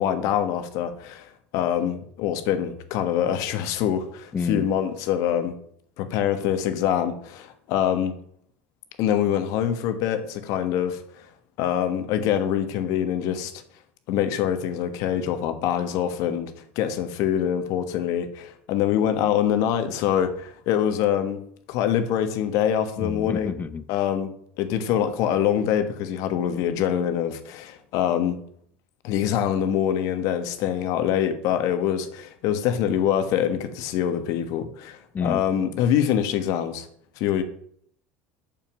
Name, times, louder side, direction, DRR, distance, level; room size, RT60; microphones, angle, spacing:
voice 1, 0.0-5.5 6.0-8.1 9.0-11.3 11.6-13.5 14.1-21.4 21.7-23.5 23.9-24.3 24.6-28.4 29.0-36.9 37.2-37.4, left 9 dB, 65° left, 1.3 m, -25 dB
voice 2, 4.3-4.7 23.0-23.8 35.1-35.4, left 5 dB, 25° left, 0.7 m, -28 dB
6.9 x 5.9 x 7.4 m
supercardioid pair, 105°, 6 cm